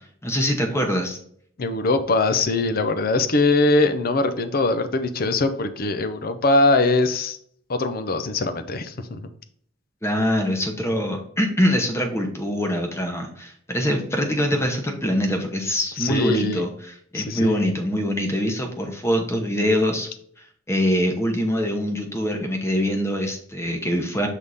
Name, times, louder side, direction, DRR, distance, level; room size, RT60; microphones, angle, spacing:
voice 1, 0.2-1.2 10.0-20.1 20.7-24.3, equal, 15° left, 3 dB, 0.9 m, -24 dB
voice 2, 1.6-7.4 7.7-9.2 16.0-16.7 17.1-17.7, left 2 dB, 45° left, 10 dB, 0.5 m, -22 dB
6.5 x 3.6 x 4.0 m, 0.63 s
head